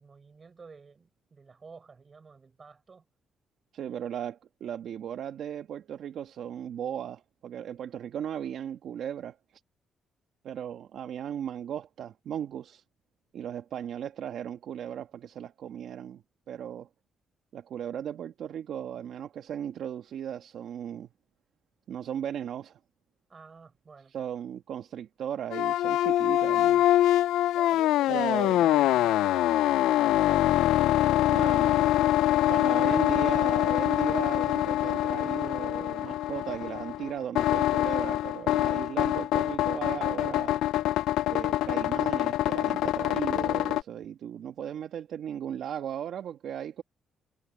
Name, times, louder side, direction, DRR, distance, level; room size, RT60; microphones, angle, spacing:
voice 1, 0.0-3.1 3.8-4.0 23.3-24.2 27.5-31.7 32.6-32.9, right 5 dB, 35° right, 5.6 m, -50 dB
voice 2, 3.7-9.4 10.4-12.8 13.3-16.9 17.5-21.1 21.9-22.8 24.1-26.8 28.1-28.7 31.3-31.9 32.5-40.6 41.3-46.8, right 9 dB, 70° right, 1.5 m, -36 dB
sound 1, 25.5-43.8, left 14 dB, 90° left, 0.3 m, -25 dB
cardioid pair, 90°, 0 cm